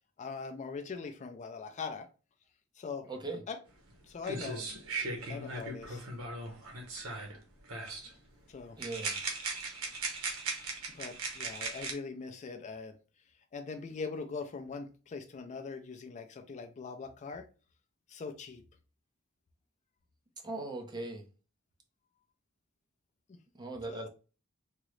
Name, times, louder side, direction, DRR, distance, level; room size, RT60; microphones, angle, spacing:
voice 1, 0.2-2.1 2.8-3.1 3.5-3.6 4.0-4.8 5.3-6.1 8.5-8.8 10.9-13.0 13.5-17.5 18.1-18.6 23.3-23.4 23.9-24.1, left 4 dB, 35° left, 6 dB, 0.3 m, -41 dB
voice 2, 3.1-3.4 8.8-9.2 20.4-21.2 23.5-24.1, right 2 dB, 20° right, 2 dB, 0.5 m, -39 dB
sound 1, 3.9-4.0 4.2-7.4 7.7-8.1 8.8-11.9, right 3 dB, 90° right, 0.9 m, -38 dB
3.6 x 2.0 x 3.1 m, 0.35 s
head